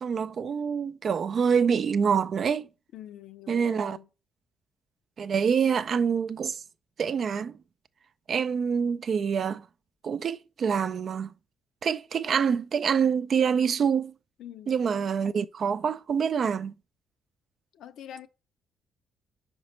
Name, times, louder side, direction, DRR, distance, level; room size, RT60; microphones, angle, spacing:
voice 1, 0.0-2.7 3.5-4.0 5.2-6.6 7.0-7.6 8.3-9.6 10.0-11.3 11.8-14.1 14.7-16.7, right 6 dB, 55° right, 0.4 m, -26 dB
voice 2, 2.9-4.1 14.4-14.8 17.7-18.3, left 10 dB, 75° left, 0.5 m, -45 dB
5.3 x 5.0 x 4.3 m
cardioid pair, 90°, 0 cm